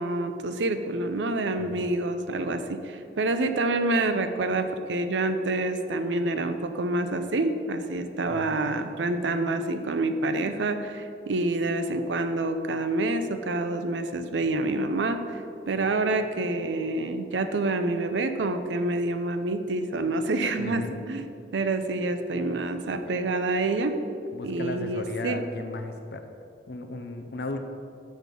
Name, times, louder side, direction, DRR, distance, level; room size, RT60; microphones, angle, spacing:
voice 1, 0.0-15.4 15.7-24.0 24.4-25.4, right 2 dB, 85° right, 8 dB, 0.5 m, -27 dB
voice 2, 8.3-8.6 20.6-21.0 24.3-26.3 26.7-27.6, left 2 dB, 60° left, 6 dB, 0.5 m, -35 dB
6.5 x 6.1 x 5.3 m, 2.5 s
head